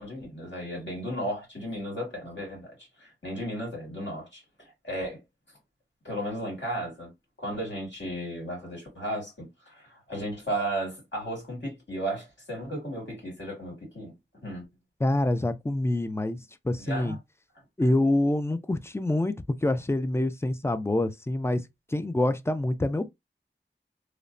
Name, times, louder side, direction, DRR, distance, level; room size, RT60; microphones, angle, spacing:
voice 1, 0.0-2.7 3.0-4.4 4.8-5.2 6.0-7.1 7.4-14.1 14.4-14.6 16.8-17.2, right 1 dB, 65° left, 2.0 m, -34 dB
voice 2, 15.0-16.4 16.6-17.2 17.8-21.6 21.9-23.1, left 1 dB, 15° left, 0.3 m, -26 dB
3.1 x 2.0 x 2.5 m
wide cardioid pair, 45°, 20 cm